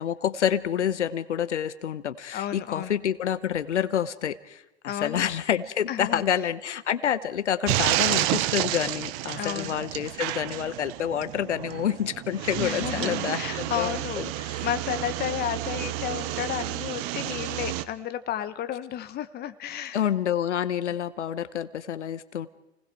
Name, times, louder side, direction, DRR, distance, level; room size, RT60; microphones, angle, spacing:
voice 1, 0.0-14.7 19.9-22.5, left 9 dB, 85° left, 15 dB, 0.9 m, -28 dB
voice 2, 2.3-2.9 4.9-5.2 5.9-6.2 9.4-9.8 12.6-20.0, left 10 dB, 25° left, 11 dB, 1.3 m, -32 dB
sound 1, 7.7-17.8, right 15 dB, 45° right, 1.1 m, -30 dB
29.5 x 19.5 x 4.7 m, 0.95 s
hypercardioid pair, 110°, 35 cm